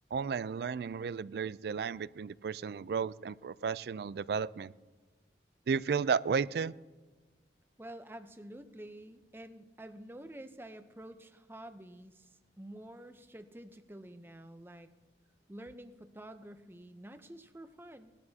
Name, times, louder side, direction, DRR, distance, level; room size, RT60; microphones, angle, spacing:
voice 1, 0.1-4.7 5.7-6.7, right 6 dB, 60° right, 19 dB, 0.3 m, -33 dB
voice 2, 7.8-14.9 15.5-18.1, right 1 dB, 10° right, 9 dB, 0.6 m, -49 dB
19.0 x 12.5 x 2.8 m, 1.3 s
head